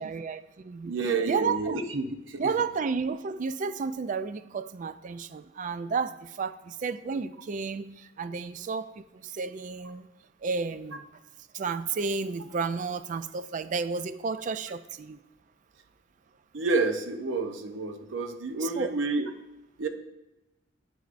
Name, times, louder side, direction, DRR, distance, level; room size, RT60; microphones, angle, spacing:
voice 1, 0.0-0.9 1.3-1.8 2.4-10.1 10.4-11.1 11.5-15.2 18.6-19.0, right 5 dB, 40° right, 0.3 m, -32 dB
voice 2, 0.8-2.5 16.5-19.3 19.8-19.9, right 3 dB, 65° right, 0.7 m, -29 dB
9.3 x 8.0 x 2.5 m
head